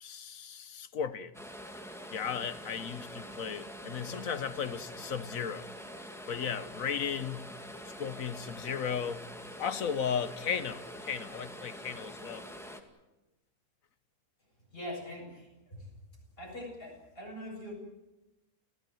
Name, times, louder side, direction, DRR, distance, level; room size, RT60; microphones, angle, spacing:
voice 1, 0.0-1.3 2.1-5.7 6.3-7.5 8.0-9.3 9.6-12.5, left 7 dB, 60° left, 1.4 m, -35 dB
sound 1, 1.3-12.8, equal, ahead, 2.1 m, -45 dB
voice 2, 3.8-4.2 14.7-15.9 16.4-17.7, left 1 dB, 35° left, 8.3 m, -43 dB
30.0 x 16.0 x 9.1 m
omnidirectional pair, 1.7 m